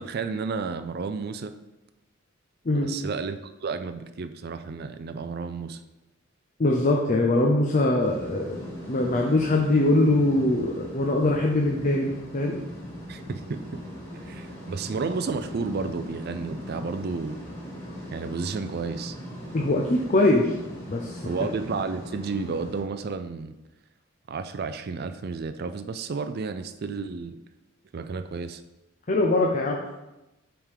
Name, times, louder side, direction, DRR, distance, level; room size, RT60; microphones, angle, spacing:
voice 1, 0.0-1.5 2.7-5.8 13.1-13.8 14.2-17.4 18.1-19.2 21.2-23.5 24.3-27.3 27.9-28.6, right 4 dB, 45° right, 9 dB, 0.4 m, -32 dB
voice 2, 2.7-3.0 6.6-8.6 8.9-12.6 19.5-20.5 20.9-21.2 29.1-29.8, left 2 dB, 35° left, 0 dB, 0.6 m, -22 dB
sound 1, 8.0-22.8, equal, 10° left, 1.9 m, -39 dB
8.5 x 3.7 x 4.9 m, 1.0 s
head